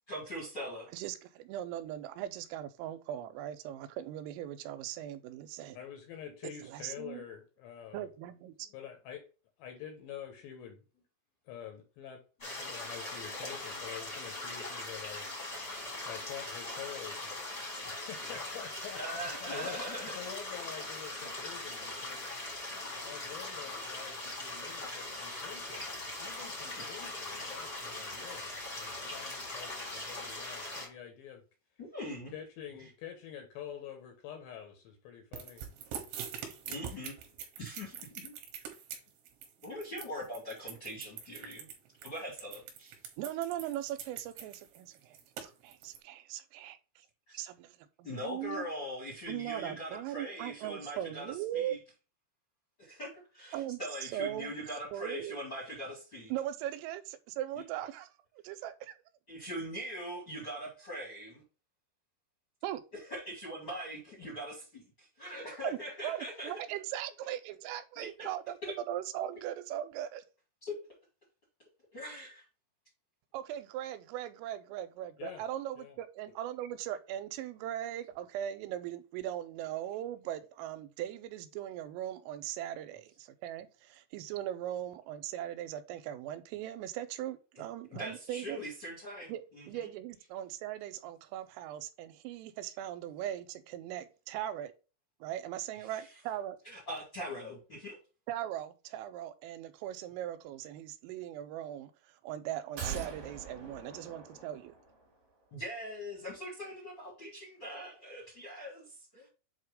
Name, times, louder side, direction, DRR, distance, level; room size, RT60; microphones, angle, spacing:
voice 1, 0.1-0.9 18.2-18.3 19.0-20.2 27.8-27.9 31.8-32.3 32.8-32.9 36.7-37.2 37.6-38.3 39.6-41.7 42.0-42.9 47.3-47.4 48.0-51.8 52.8-56.3 59.3-61.4 63.0-66.6 68.2-68.3 68.6-68.7 70.6-70.8 71.9-72.4 87.5-87.6 87.9-89.9 95.8-96.2 96.6-98.0 105.5-109.3, equal, 45° left, 1.4 m, -42 dB
voice 2, 0.9-5.8 6.4-7.2 7.9-8.7 43.2-46.8 47.3-48.7 49.3-51.8 53.5-54.5 54.9-55.4 56.3-58.1 58.4-59.0 62.6-62.8 65.6-66.2 66.4-68.6 68.9-70.2 73.3-88.6 89.3-89.4 89.7-94.7 95.2-96.6 98.3-101.9 102.2-104.8, right 12 dB, 85° right, 3.2 m, -39 dB
voice 3, 5.7-8.1 8.7-9.2 9.6-10.8 11.5-15.3 16.1-17.2 17.8-19.8 20.2-22.4 23.0-31.4 32.3-35.6 75.2-75.4 75.8-76.0, left 9 dB, 75° left, 2.7 m, -47 dB
sound 1, 12.4-30.9, left 2 dB, 25° left, 1.1 m, -41 dB
sound 2, 35.3-46.0, right 8 dB, 70° right, 3.0 m, -44 dB
sound 3, 102.8-105.1 105.4-105.5, right 6 dB, 50° right, 3.0 m, -43 dB
7.9 x 2.9 x 4.8 m
omnidirectional pair, 5.9 m